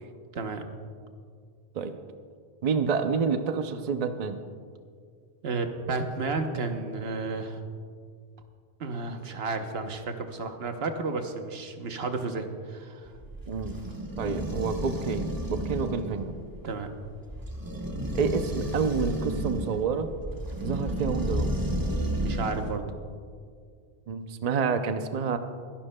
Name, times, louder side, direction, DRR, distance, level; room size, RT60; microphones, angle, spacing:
voice 1, 0.3-0.6 5.4-7.6 8.8-13.1 16.6-16.9 22.2-22.9, right 3 dB, 65° right, 6 dB, 1.1 m, -32 dB
voice 2, 2.6-4.4 13.5-13.8 14.2-16.3 18.1-20.1 20.6-21.5 24.1-25.4, right 5 dB, 45° right, 8 dB, 0.6 m, -28 dB
sound 1, 13.0-22.8, equal, 20° right, 1.0 m, -32 dB
23.0 x 11.5 x 2.2 m, 2.1 s
omnidirectional pair, 1.1 m